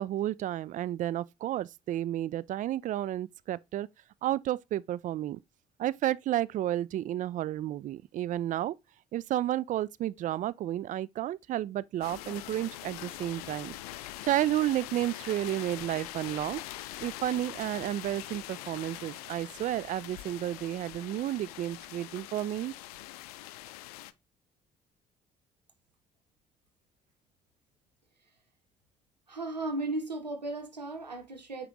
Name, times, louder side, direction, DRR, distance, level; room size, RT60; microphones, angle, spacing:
voice 1, 0.0-3.9 4.2-5.4 5.8-8.7 9.1-13.7 14.3-16.6 17.0-22.7, right 13 dB, 40° right, 0.4 m, -31 dB
sound 1, 12.0-24.1, left 15 dB, 70° left, 0.5 m, -43 dB
voice 2, 29.3-31.7, right 2 dB, 85° right, 0.9 m, -35 dB
8.9 x 3.1 x 3.7 m
figure-of-eight pair, 45°, 21 cm